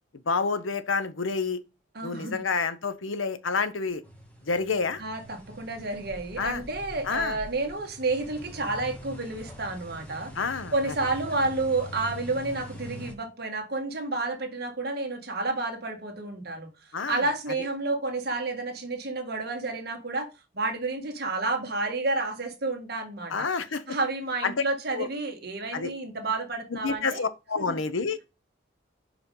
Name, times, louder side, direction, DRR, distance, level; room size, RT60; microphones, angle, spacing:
voice 1, 0.3-1.6 2.0-4.0 4.5-5.0 6.4-6.6 7.0-7.4 10.4-10.7 16.9-17.2 23.3-23.8 24.4-24.5 24.9-25.1 25.7-25.9 26.7-28.2, left 4 dB, 90° left, 0.8 m, -28 dB
voice 2, 1.9-2.4 5.0-10.3 10.7-20.3 20.5-23.5 23.9-27.2 27.5-27.8, right 2 dB, 55° right, 1.7 m, -30 dB
sound 1, 4.0-13.1, equal, 5° left, 1.6 m, -44 dB
5.2 x 5.0 x 5.3 m
head